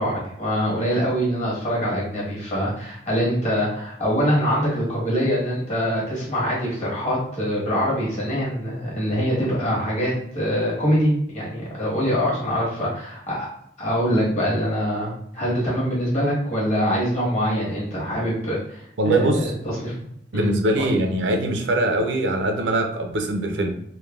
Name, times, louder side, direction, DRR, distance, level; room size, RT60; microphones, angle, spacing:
voice 1, 0.0-13.5 13.8-19.4 19.6-19.9 20.3-20.5 20.8-20.9, equal, 40° left, -6 dB, 1.2 m, -24 dB
voice 2, 19.0-19.5 20.3-23.7, right 1 dB, 85° right, 4 dB, 0.5 m, -22 dB
3.3 x 2.1 x 2.3 m, 0.73 s
head